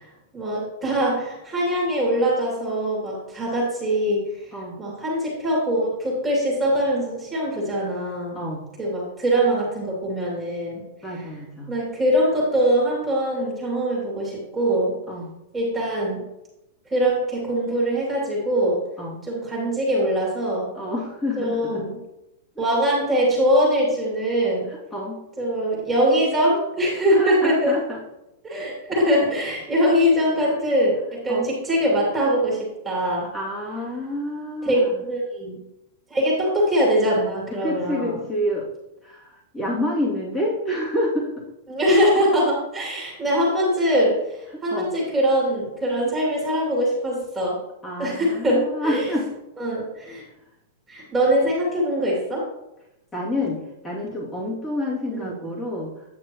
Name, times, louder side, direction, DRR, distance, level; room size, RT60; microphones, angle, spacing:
voice 1, 0.3-4.3 4.8-8.4 8.8-10.8 11.7-15.0 15.5-16.2 16.9-18.8 19.2-20.7 21.4-22.0 22.6-24.7 25.4-27.8 28.4-33.3 34.6-35.6 36.1-38.2 41.7-47.6 48.0-49.1 49.6-50.2 50.9-52.4 55.1-55.3, equal, 15° right, -4 dB, 2.8 m, -22 dB
voice 2, 11.0-11.7 15.1-15.3 19.0-19.2 20.7-21.9 22.5-22.6 24.7-25.2 27.1-28.0 30.4-30.6 31.3-31.5 33.3-35.0 37.6-38.7 39.0-41.4 44.5-44.9 47.8-49.3 53.1-55.9, left 1 dB, 15° left, -5 dB, 2.7 m, -28 dB
9.5 x 6.2 x 3.1 m, 0.91 s
hypercardioid pair, 135°, 0 cm